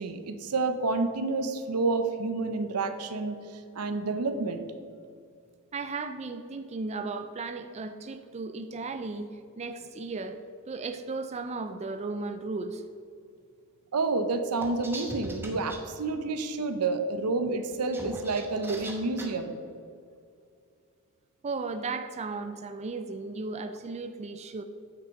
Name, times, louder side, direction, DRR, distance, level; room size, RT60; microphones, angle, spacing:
voice 1, 0.0-3.4 3.7-4.7 13.9-19.6, right 3 dB, 90° right, 8 dB, 0.7 m, -29 dB
voice 2, 5.7-9.3 9.6-10.4 10.7-12.8 21.4-24.6, right 3 dB, 30° right, 8 dB, 0.4 m, -35 dB
sound 1, 14.6-15.8 17.7-19.3, right 1 dB, 10° right, 1.0 m, -39 dB
8.9 x 6.2 x 4.7 m, 2.4 s
head